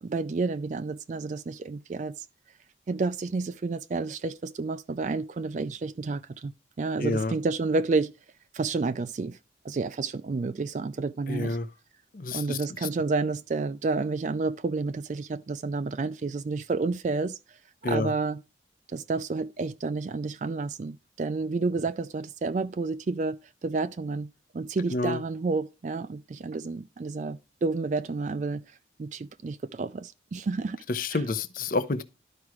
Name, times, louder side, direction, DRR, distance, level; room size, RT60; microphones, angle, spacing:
voice 1, 0.0-2.2 2.9-6.5 6.8-8.1 8.5-9.4 9.6-11.6 12.3-17.4 17.9-18.4 18.9-28.6 29.0-30.8, right 3 dB, 40° right, 0.3 m, -30 dB
voice 2, 7.0-7.4 11.3-11.7 12.1-12.9 17.8-18.1 24.9-25.2 30.9-32.0, left 3 dB, 45° left, 0.6 m, -29 dB
12.0 x 4.9 x 3.1 m
head